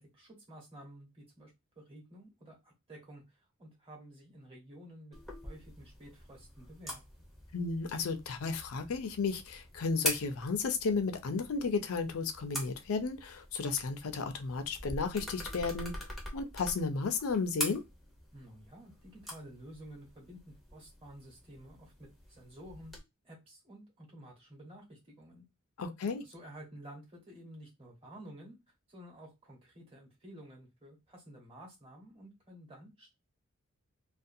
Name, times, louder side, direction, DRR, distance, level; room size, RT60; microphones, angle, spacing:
voice 1, 0.0-5.2 5.4-7.0 18.3-22.9 23.2-25.4 26.2-28.6 28.9-33.1, right 1 dB, 25° right, 1.1 m, -52 dB
sound 1, 5.1-23.0, equal, ahead, 0.6 m, -44 dB
voice 2, 7.5-17.8 25.8-26.2, left 4 dB, 75° left, 0.5 m, -33 dB
2.4 x 2.2 x 2.6 m
head